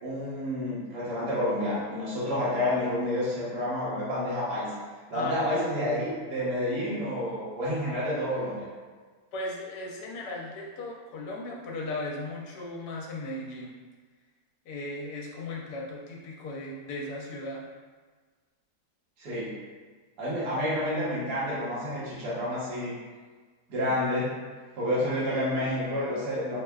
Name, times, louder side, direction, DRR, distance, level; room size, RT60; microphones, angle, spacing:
voice 1, 0.0-4.7 5.1-8.7 19.2-19.6 20.2-22.9 23.7-24.4 24.8-26.6, left 1 dB, 70° right, -9 dB, 1.6 m, -29 dB
voice 2, 7.9-8.2 9.3-13.7 14.7-17.7, left 2 dB, 75° left, -2 dB, 1.2 m, -37 dB
4.8 x 2.2 x 2.3 m, 1.4 s
omnidirectional pair, 1.8 m